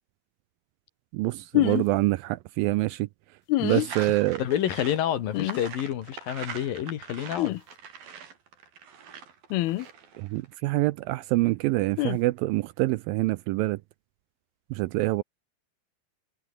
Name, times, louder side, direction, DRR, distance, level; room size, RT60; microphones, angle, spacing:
voice 1, 1.1-3.1 3.6-4.4 10.2-13.8 14.7-15.2, right 19 dB, 80° right, 2.2 m, -26 dB
sound 1, 1.5-1.8 3.5-3.9 5.3-5.6 7.4-7.6 9.5-9.9 12.0-12.2, left 17 dB, 85° left, 2.8 m, -25 dB
voice 2, 3.6-7.6, left 10 dB, 70° left, 3.3 m, -29 dB
sound 2, 3.9-10.5, right 7 dB, 65° right, 5.2 m, -42 dB
omnidirectional pair, 4.5 m